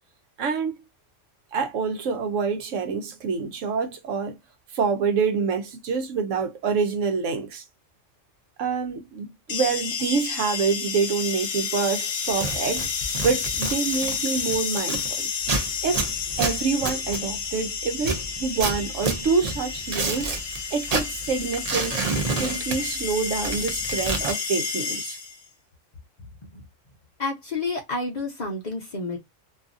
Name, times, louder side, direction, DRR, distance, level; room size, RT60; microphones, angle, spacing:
voice 1, 0.4-0.8 1.5-4.4 4.7-7.6 8.6-15.3 15.8-16.0 16.4-22.0 22.4-25.2, right 5 dB, 75° right, 1.0 m, -26 dB
sound 1, 9.5-25.5, left 6 dB, 75° left, 1.2 m, -30 dB
sound 2, 12.3-15.1 15.4-17.6 18.0-20.6 20.9-23.1 23.4-24.3, right 3 dB, 45° right, 0.5 m, -29 dB
voice 2, 27.2-29.2, left 3 dB, 40° left, 0.7 m, -29 dB
2.7 x 2.4 x 2.5 m
omnidirectional pair, 1.3 m